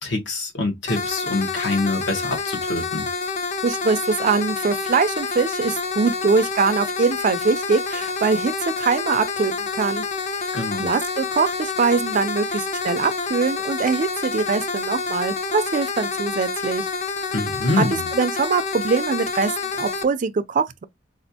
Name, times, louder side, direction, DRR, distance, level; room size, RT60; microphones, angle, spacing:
voice 1, 0.0-3.1 10.5-10.8 17.3-18.0, left 2 dB, 70° left, 1.1 m, -25 dB
sound 1, 0.9-20.0, left 4 dB, 35° left, 0.4 m, -28 dB
voice 2, 3.6-10.0 10.8-16.9 17.7-17.8 18.1-20.8, right 5 dB, 40° right, 0.4 m, -22 dB
4.2 x 2.4 x 2.7 m
head